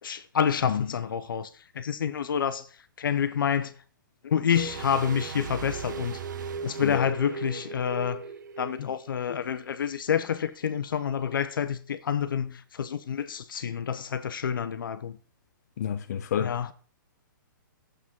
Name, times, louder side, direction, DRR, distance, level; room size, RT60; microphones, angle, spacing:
voice 1, 0.0-2.7 3.0-3.7 4.2-6.2 6.6-8.2 8.6-15.2 16.4-16.7, left 8 dB, 75° left, 1.0 m, -28 dB
sound 1, 4.5-9.4 9.6-9.7, right 6 dB, 60° right, 0.9 m, -37 dB
voice 2, 15.8-16.7, left 9 dB, 50° left, 0.7 m, -30 dB
11.0 x 8.1 x 3.8 m
hypercardioid pair, 165°, 11 cm